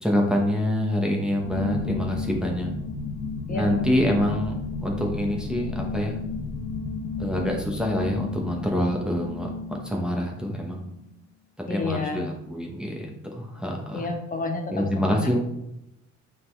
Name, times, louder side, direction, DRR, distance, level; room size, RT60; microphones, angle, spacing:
voice 1, 0.0-2.7 3.5-6.2 7.2-10.9 11.7-14.0 14.7-15.4, equal, 5° right, -1 dB, 0.9 m, -26 dB
sound 1, 1.4-10.9, left 4 dB, 50° left, 1.0 m, -33 dB
voice 2, 11.7-12.2 13.9-15.4, left 4 dB, 30° left, 3 dB, 1.0 m, -30 dB
8.6 x 3.8 x 3.3 m, 0.85 s
cardioid pair, 160°, 30 cm